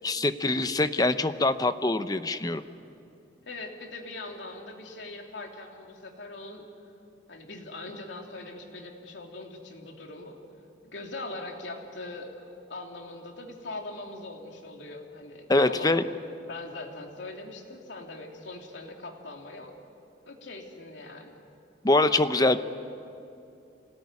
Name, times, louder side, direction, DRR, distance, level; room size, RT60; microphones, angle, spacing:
voice 1, 0.0-2.6 15.5-16.0 21.8-22.6, left 2 dB, 20° left, 11 dB, 0.7 m, -24 dB
voice 2, 3.4-6.7 7.3-10.4 10.8-12.3 12.7-16.0 16.5-19.7 20.3-21.4, left 2 dB, 80° left, 1 dB, 3.1 m, -41 dB
26.5 x 18.5 x 9.7 m, 2.6 s
head